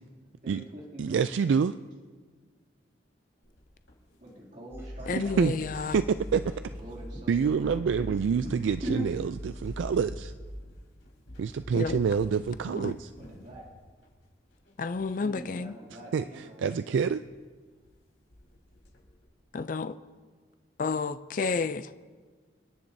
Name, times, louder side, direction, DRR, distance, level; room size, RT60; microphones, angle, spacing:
voice 1, 0.4-1.3 4.2-5.5 6.7-7.3 7.6-7.7 8.4-9.1 13.2-13.7 15.1-16.8, right 1 dB, 40° right, -3 dB, 2.7 m, -41 dB
voice 2, 1.0-1.7 5.2-5.5 5.9-6.7 7.3-10.3 11.4-13.1 16.1-17.2, right 6 dB, 80° right, 12 dB, 0.3 m, -27 dB
sound 1, 3.4-4.6 4.9-7.9 8.4-8.5 8.9-9.1 9.4-15.5 15.8-15.9 16.1-16.2 16.6-16.8 17.2-17.4 17.6-18.0 18.3-19.2, left 1 dB, 85° left, 4.2 m, -51 dB
sound 2, 4.7-10.6, equal, 15° right, 3.4 m, -41 dB
voice 3, 5.1-6.0 11.7-12.0 12.8-12.9 14.8-15.8 19.5-20.0 20.8-21.9, left 4 dB, 45° left, 11 dB, 0.4 m, -31 dB
29.0 x 10.0 x 2.7 m, 1.5 s
head